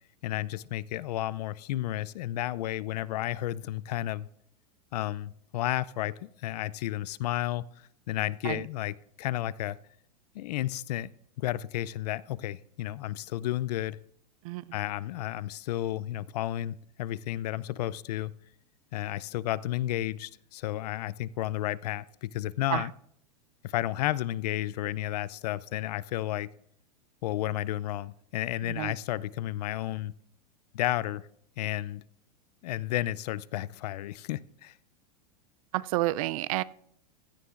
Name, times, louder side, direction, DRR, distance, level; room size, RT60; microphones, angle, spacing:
voice 1, 0.2-4.3 4.9-9.8 10.3-11.1 11.4-14.0 14.7-18.3 18.9-22.9 23.6-26.5 27.2-30.1 30.7-31.3 31.6-32.0 32.6-34.7, left 14 dB, 75° left, 0.5 m, -32 dB
voice 2, 14.4-14.8 22.7-22.9 28.7-28.9 35.7-36.6, right 18 dB, 60° right, 0.4 m, -30 dB
16.0 x 14.0 x 2.5 m
supercardioid pair, 145°, 21 cm